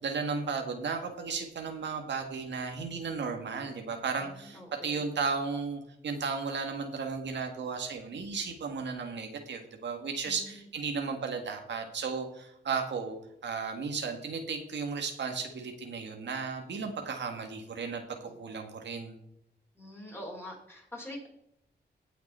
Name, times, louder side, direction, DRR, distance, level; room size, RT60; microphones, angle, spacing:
voice 1, 0.0-13.2 13.4-19.1, right 5 dB, 90° right, 4 dB, 1.8 m, -34 dB
voice 2, 4.2-4.9 10.2-10.6 18.2-18.3 19.7-21.3, left 1 dB, 15° left, -1 dB, 4.6 m, -45 dB
17.5 x 6.1 x 4.4 m, 0.77 s
wide cardioid pair, 115°, 18 cm